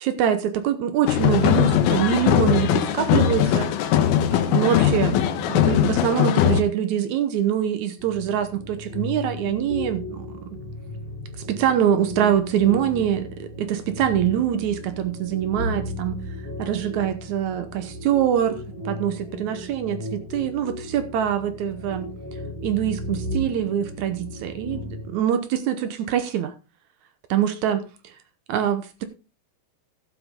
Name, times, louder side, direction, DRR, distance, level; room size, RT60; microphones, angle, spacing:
voice 1, 0.0-3.7 4.3-10.4 11.5-16.2 16.6-22.1 22.6-26.5 27.3-28.1 28.5-29.0, right 10 dB, 70° right, 10 dB, 1.9 m, -24 dB
sound 1, 1.1-6.6, left 10 dB, 85° left, 2.7 m, -20 dB
sound 2, 8.0-25.1, left 1 dB, 20° left, 2.2 m, -35 dB
12.5 x 7.8 x 3.6 m, 0.31 s
omnidirectional pair, 4.1 m